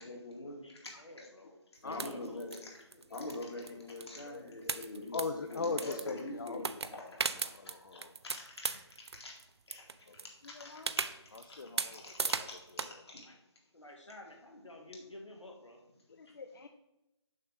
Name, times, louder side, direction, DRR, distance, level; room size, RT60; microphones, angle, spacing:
voice 1, 0.0-0.6 1.2-1.3 1.8-2.7 3.1-6.6 6.9-7.0 7.3-7.5 7.9-8.8 9.1-9.3 9.7-9.8 10.6-11.1 11.5-11.6 11.9-12.6 13.1-13.2, left 2 dB, 60° left, -1 dB, 2.3 m, -44 dB
voice 2, 0.6-1.6 1.9-3.2 13.2-13.4 13.7-15.8, left 1 dB, 90° left, 1 dB, 1.8 m, -51 dB
sound 1, 2.0-2.6 2.9-4.4 4.7-6.2 6.5-9.4 9.7-10.2 10.8-12.9, right 5 dB, 65° right, 0.4 m, -36 dB
voice 3, 4.2-6.7 7.3-8.1 10.1-10.2 10.4-11.0 11.3-12.5 12.7-12.8 16.1-16.7, left 4 dB, 45° left, 8 dB, 0.4 m, -41 dB
6.4 x 5.9 x 3.5 m, 0.92 s
figure-of-eight pair, 150°, 15 cm